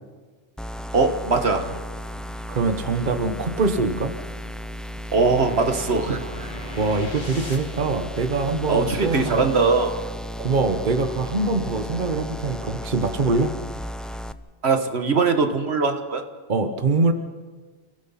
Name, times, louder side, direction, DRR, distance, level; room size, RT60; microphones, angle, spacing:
sound 1, 0.6-14.3, equal, ahead, 0.4 m, -34 dB
voice 1, 0.9-1.7 5.1-6.2 8.7-10.0 14.6-16.2, right 4 dB, 75° right, 6 dB, 1.7 m, -21 dB
voice 2, 2.5-4.1 6.8-9.5 10.4-13.5 16.5-17.1, right 3 dB, 50° right, 8 dB, 1.1 m, -23 dB
sound 2, 5.4-8.0, left 1 dB, 45° left, 3.3 m, -38 dB
29.5 x 16.5 x 5.7 m, 1.4 s
omnidirectional pair, 1.1 m